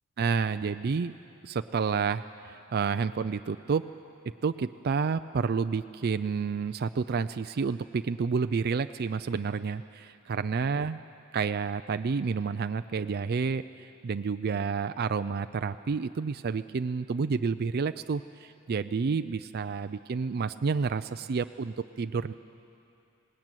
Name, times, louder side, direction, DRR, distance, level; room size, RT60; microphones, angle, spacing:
voice 1, 0.2-1.1 1.4-3.9 4.4-11.0 11.3-22.3, right 5 dB, 50° right, 10 dB, 0.4 m, -30 dB
19.5 x 19.0 x 9.1 m, 2.7 s
head